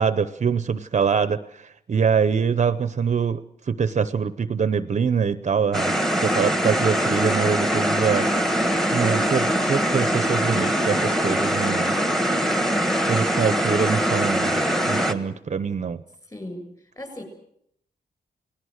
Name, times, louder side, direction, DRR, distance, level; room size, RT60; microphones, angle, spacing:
voice 1, 0.0-3.4 3.7-6.0 6.2-8.2 8.9-12.0 13.1-16.0, right 6 dB, 40° right, 14 dB, 0.8 m, -24 dB
sound 1, 5.7-15.1, equal, ahead, 1.6 m, -22 dB
voice 2, 16.3-17.2, left 1 dB, 20° left, 6 dB, 6.7 m, -37 dB
29.5 x 19.0 x 6.5 m, 0.72 s
wide cardioid pair, 170°, 18 cm